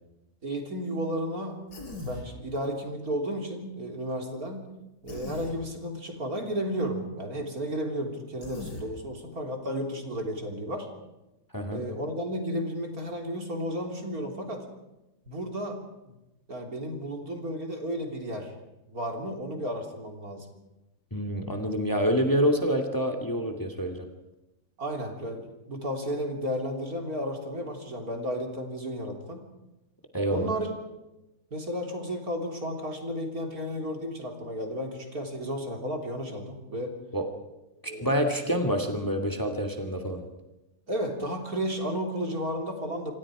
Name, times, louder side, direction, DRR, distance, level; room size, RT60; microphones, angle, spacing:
voice 1, 0.4-1.6 2.0-4.7 5.0-10.9 11.7-14.6 15.3-15.8 16.1-16.2 16.5-18.5 18.9-20.5 24.8-29.5 30.3-30.7 31.5-37.0 37.9-38.1 38.5-38.6 40.9-43.1, equal, 60° right, 3 dB, 3.9 m, -33 dB
Human voice, 1.7-2.3 5.1-5.5 8.4-8.9, left 2 dB, 90° left, 5.3 m, -39 dB
voice 2, 21.1-24.1 30.1-30.5 37.1-37.2 37.8-40.2, equal, 10° left, 5 dB, 2.4 m, -27 dB
27.0 x 26.0 x 5.0 m, 0.98 s
omnidirectional pair, 1.7 m